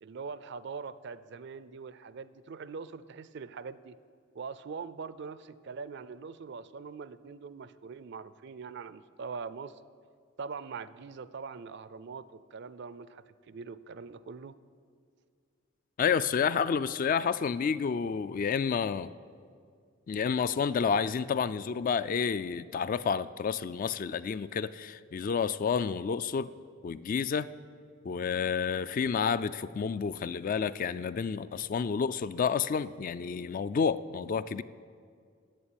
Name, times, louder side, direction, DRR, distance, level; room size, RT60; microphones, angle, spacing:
voice 1, 0.0-4.0 4.3-9.8 10.4-14.5, right 5 dB, 60° right, 15 dB, 0.4 m, -42 dB
voice 2, 16.0-19.1 20.1-26.5 26.8-27.5 28.0-34.6, left 6 dB, 45° left, 15 dB, 0.3 m, -30 dB
11.0 x 8.1 x 8.7 m, 2.2 s
head